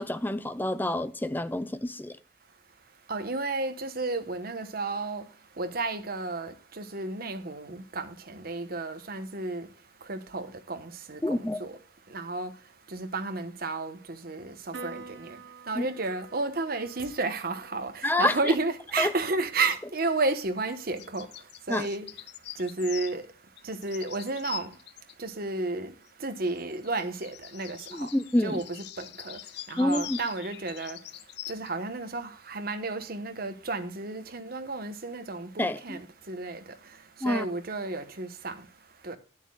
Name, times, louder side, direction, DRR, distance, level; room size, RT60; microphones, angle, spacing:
voice 1, 0.0-2.2 11.2-11.7 15.7-15.9 18.0-18.6 19.0-19.1 21.7-21.9 27.9-28.6 29.8-30.2 35.6-36.0 37.2-37.5, left 1 dB, 10° left, 0.5 m, -28 dB
voice 2, 3.1-5.2 5.6-9.7 10.1-11.7 12.1-12.5 12.9-15.4 15.7-21.3 21.7-22.1 22.6-23.2 23.6-24.7 25.2-25.9 26.2-28.1 28.4-29.4 29.7-31.0 31.5-36.6 37.2-38.6 39.0-39.2, right 3 dB, 55° right, 1.2 m, -32 dB
Piano, 14.7-21.4, right 3 dB, 85° right, 1.1 m, -49 dB
sound 1, 21.0-23.2 23.6-25.1 26.5-31.7, left 14 dB, 60° left, 0.4 m, -43 dB
12.0 x 10.5 x 2.3 m
head